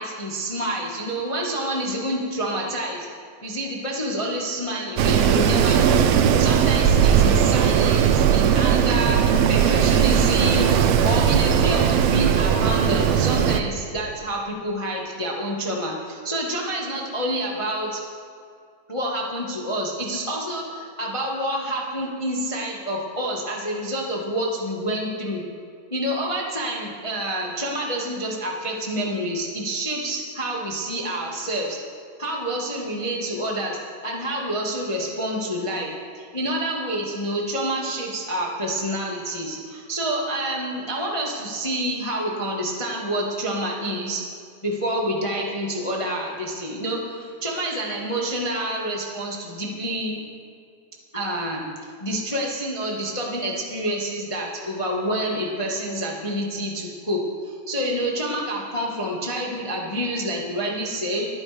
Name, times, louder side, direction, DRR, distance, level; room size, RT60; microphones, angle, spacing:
voice 1, 0.0-3.1 3.4-6.0 6.4-10.7 11.0-18.0 18.9-25.4 25.9-31.8 32.2-44.2 44.6-50.2 51.1-51.7 52.0-61.3, right 1 dB, 35° left, -2 dB, 0.5 m, -28 dB
Wind, 5.0-13.6, right 8 dB, 80° right, 1.4 m, -18 dB
26.0 x 9.7 x 3.4 m, 2.3 s
omnidirectional pair, 3.5 m